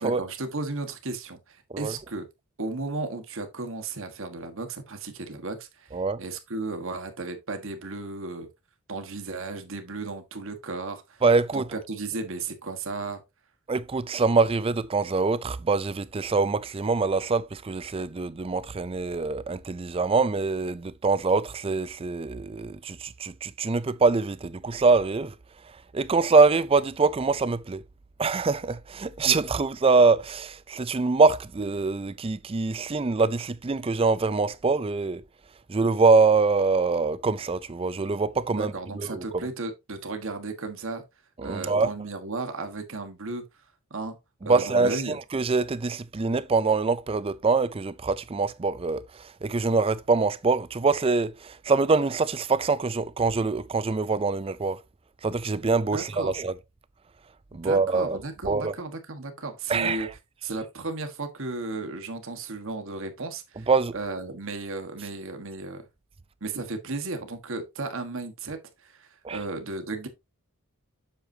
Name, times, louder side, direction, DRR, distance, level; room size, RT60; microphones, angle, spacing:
voice 1, 0.0-2.2 2.6-8.5 8.9-11.2 11.5-13.2 29.2-29.4 38.5-41.0 41.4-43.4 43.9-44.2 44.4-45.2 55.9-56.3 57.5-60.1 60.4-63.7 63.9-65.9 66.4-70.1, right 3 dB, 60° right, 1.4 m, -34 dB
voice 2, 11.2-11.7 13.7-25.3 25.9-27.8 28.2-35.2 35.7-39.2 41.4-41.9 44.5-54.8 55.2-56.5 57.5-58.2 58.4-58.7 59.7-60.1 63.7-63.9 69.2-69.4, right 4 dB, 25° right, 0.4 m, -24 dB
7.9 x 6.7 x 2.8 m
head